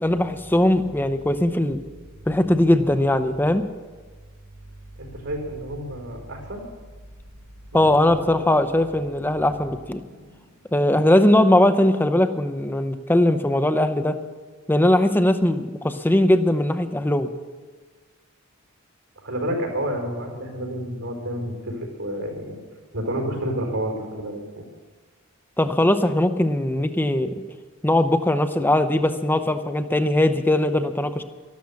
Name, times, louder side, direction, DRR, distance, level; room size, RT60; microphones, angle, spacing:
voice 1, 0.0-1.8 2.3-3.6 7.7-10.0 10.7-14.2 14.7-17.3 25.6-27.3 27.8-31.2, left 1 dB, 10° left, 10 dB, 0.7 m, -20 dB
voice 2, 5.0-6.7 7.7-8.2 10.1-10.4 19.2-22.6 22.9-24.6, right 1 dB, 80° right, 1 dB, 4.3 m, -30 dB
13.0 x 12.5 x 7.1 m, 1.4 s
head